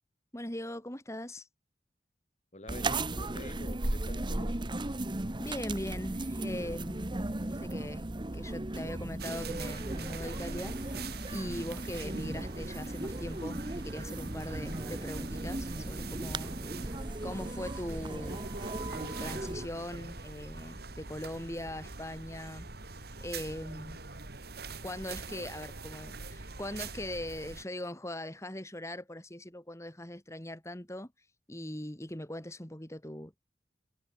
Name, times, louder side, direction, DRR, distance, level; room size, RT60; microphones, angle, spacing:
voice 1, 0.3-1.5 5.4-8.1 8.3-16.9 17.2-18.4 18.9-22.7 23.2-24.1 24.8-33.4, left 1 dB, 15° left, 2.7 m, -41 dB
voice 2, 2.5-4.6, left 1 dB, 40° left, 3.5 m, -47 dB
sound 1, 2.7-19.7, right 2 dB, 25° right, 1.1 m, -36 dB
sound 2, 9.2-27.6, right 4 dB, 60° right, 2.4 m, -44 dB
head